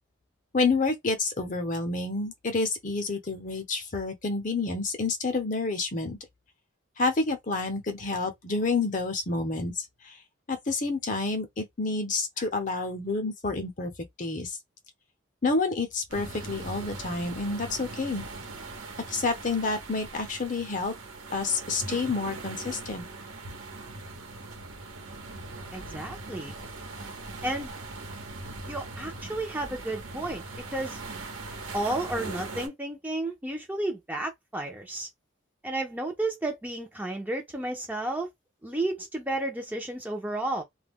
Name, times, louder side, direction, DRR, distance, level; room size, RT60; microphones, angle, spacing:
voice 1, 0.5-6.2 7.0-10.1 10.5-13.9 14.2-14.6 15.4-18.3 19.1-20.9 21.3-23.1, left 3 dB, 40° left, 0.7 m, -29 dB
sound 1, 16.1-32.7, right 2 dB, 80° right, 0.9 m, -40 dB
voice 2, 25.7-26.6 27.4-27.7 28.7-30.4 30.7-31.0 31.7-35.1 35.6-38.3 38.6-40.6, right 2 dB, 10° right, 0.5 m, -32 dB
2.3 x 2.1 x 3.5 m
head